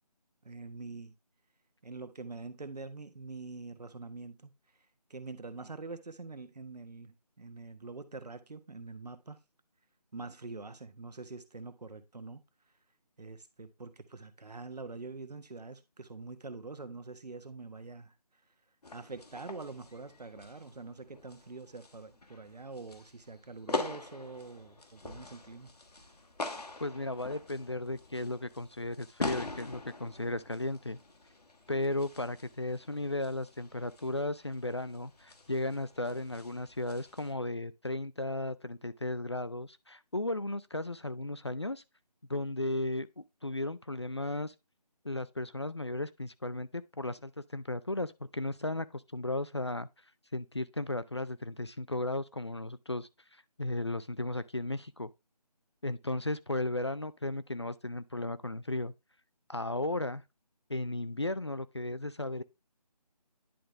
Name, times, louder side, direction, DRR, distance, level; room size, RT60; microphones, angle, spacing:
voice 1, 0.4-1.1 1.8-4.5 5.1-9.4 10.1-12.4 13.2-18.1 18.9-25.7, right 3 dB, 75° right, 1.2 m, -45 dB
sound 1, 18.8-37.3, left 3 dB, 70° left, 1.4 m, -44 dB
voice 2, 26.8-31.0 31.7-41.8 42.3-44.5 45.0-49.9 50.3-53.1 53.6-55.1 55.8-58.9 59.5-60.2 60.7-62.4, left 2 dB, 45° left, 0.4 m, -35 dB
10.0 x 3.8 x 3.3 m
figure-of-eight pair, 175°, 21 cm